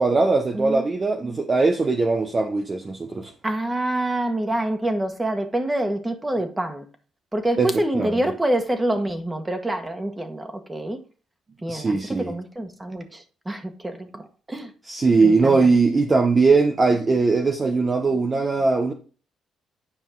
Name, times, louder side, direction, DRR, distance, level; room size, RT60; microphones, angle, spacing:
voice 1, 0.0-3.3 7.6-8.1 11.7-12.3 14.9-18.9, right 3 dB, 30° right, 1.0 m, -20 dB
voice 2, 0.5-0.8 1.2-1.4 3.4-6.9 7.3-11.0 11.6-14.7 15.2-15.6, right 1 dB, 15° right, 1.7 m, -26 dB
10.0 x 5.4 x 3.8 m
cardioid pair, 90°, 0 cm